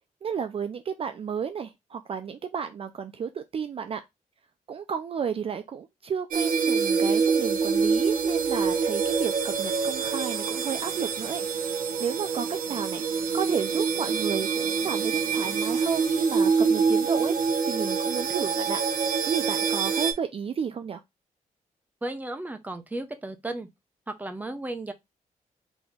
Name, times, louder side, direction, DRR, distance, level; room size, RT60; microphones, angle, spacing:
voice 1, 0.2-4.0 4.7-13.0 13.3-18.8 19.2-21.0, right 7 dB, 40° right, 0.4 m, -32 dB
sound 1, 6.3-20.1, right 5 dB, 80° right, 0.9 m, -26 dB
voice 2, 22.0-23.7 24.2-24.9, right 2 dB, 10° right, 0.7 m, -34 dB
4.1 x 2.9 x 3.5 m
cardioid pair, 120°, 14 cm